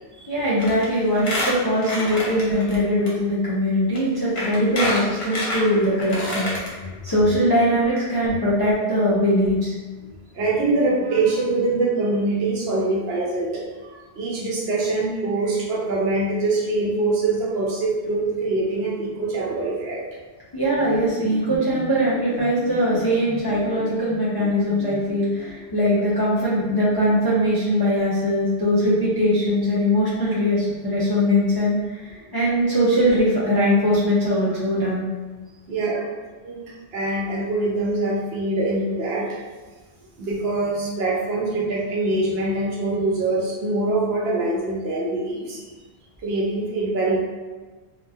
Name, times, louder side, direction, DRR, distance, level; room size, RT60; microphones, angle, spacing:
voice 1, 0.3-6.8 7.0-9.7 20.5-35.0, equal, 35° left, -9 dB, 0.4 m, -21 dB
Squeak, 0.6-0.8 1.1-2.8 3.1-3.2 3.9-4.0 4.4-6.7 7.1-7.2 7.4-7.5, left 1 dB, 70° left, 1.0 m, -27 dB
voice 2, 10.3-20.0 35.7-36.1 36.4-36.6 36.9-39.4 40.2-45.6 46.2-47.2, right 2 dB, 70° right, -2 dB, 0.8 m, -24 dB
sound 1, 20.7-25.6, equal, 10° right, 0.6 m, -37 dB
2.8 x 2.2 x 2.3 m, 1.3 s
omnidirectional pair, 1.1 m